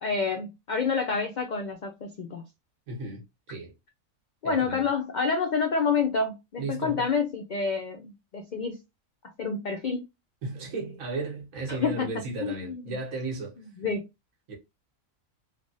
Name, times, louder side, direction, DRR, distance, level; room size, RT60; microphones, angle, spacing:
voice 1, 0.0-2.4 4.4-8.8 9.4-10.0 11.7-12.1 12.4-12.9 13.8-14.0, left 5 dB, 90° left, 0.4 m, -28 dB
voice 2, 2.9-3.7 4.4-4.8 6.6-7.1 10.4-13.6 14.5-14.6, right 3 dB, 90° right, 1.4 m, -35 dB
3.3 x 2.2 x 2.6 m
omnidirectional pair, 1.4 m